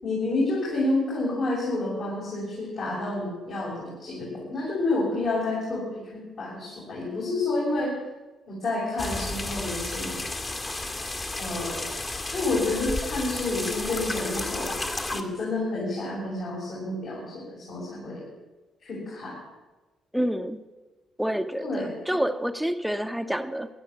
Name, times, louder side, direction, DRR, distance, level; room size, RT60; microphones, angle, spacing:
voice 1, 0.0-7.9 8.5-10.2 11.4-11.8 12.3-18.2 18.8-19.4 21.6-21.9, left 2 dB, 60° left, -6 dB, 6.9 m, -29 dB
sound 1, 9.0-15.2, left 2 dB, 30° left, 2.1 m, -32 dB
voice 2, 20.1-20.6 21.2-23.7, equal, 5° right, 8 dB, 1.2 m, -28 dB
15.5 x 11.5 x 8.4 m, 1.2 s
hypercardioid pair, 50°, 0 cm